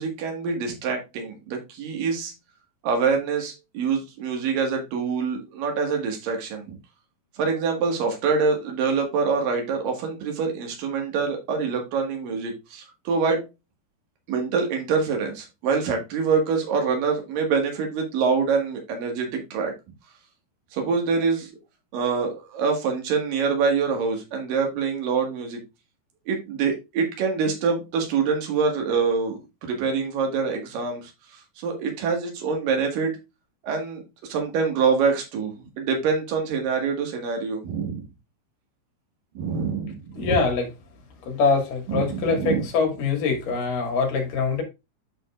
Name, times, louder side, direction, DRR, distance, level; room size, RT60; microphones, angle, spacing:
voice 1, 0.0-2.3 2.8-6.8 7.4-13.4 14.3-19.7 20.7-21.5 21.9-25.6 26.3-31.1 31.6-33.1 33.6-38.0 39.4-40.3 41.9-42.6, right 5 dB, 75° right, 3.5 m, -25 dB
voice 2, 40.2-40.7 41.2-44.6, left 4 dB, 70° left, 3.7 m, -23 dB
9.7 x 5.4 x 2.5 m
omnidirectional pair, 4.0 m